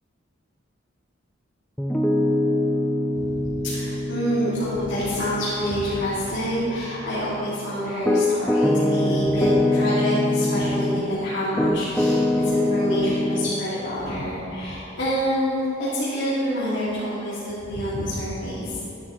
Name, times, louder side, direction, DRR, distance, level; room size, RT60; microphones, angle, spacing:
Piano, 1.8-11.1 11.6-13.6, left 1 dB, 5° left, 0.5 m, -24 dB
voice 1, 3.1-18.8, equal, 65° left, -11 dB, 2.5 m, -27 dB
14.0 x 11.0 x 3.2 m, 2.9 s
head